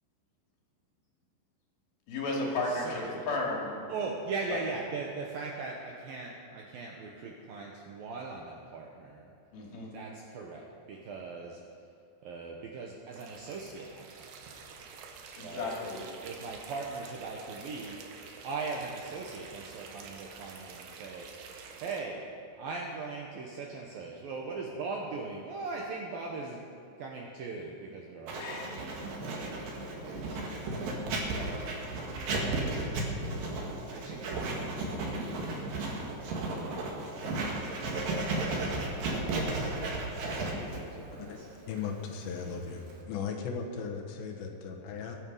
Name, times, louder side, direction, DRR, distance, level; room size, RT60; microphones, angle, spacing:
voice 1, 2.1-2.9 3.3-3.7 9.5-9.9 15.4-16.0 28.4-28.7 30.1-30.4 31.3-31.5, left 2 dB, 55° left, -2 dB, 3.9 m, -34 dB
voice 2, 2.6-3.1 3.9-9.3 9.9-11.8 12.2-14.3 14.8-14.9 15.4-15.7 16.2-18.2 18.4-21.5 21.8-22.2 22.6-26.6 27.0-30.5 32.4-33.0 33.9-34.4 39.7-41.5, right 4 dB, 75° right, -1 dB, 2.2 m, -40 dB
sound 1, 13.1-22.0, right 5 dB, 90° right, 3.8 m, -48 dB
Writing, 28.3-43.0, right 2 dB, 55° right, 3.3 m, -34 dB
voice 3, 41.7-45.2, left 6 dB, 75° left, 2 dB, 3.3 m, -37 dB
23.0 x 9.3 x 5.5 m, 2.5 s
omnidirectional pair, 5.4 m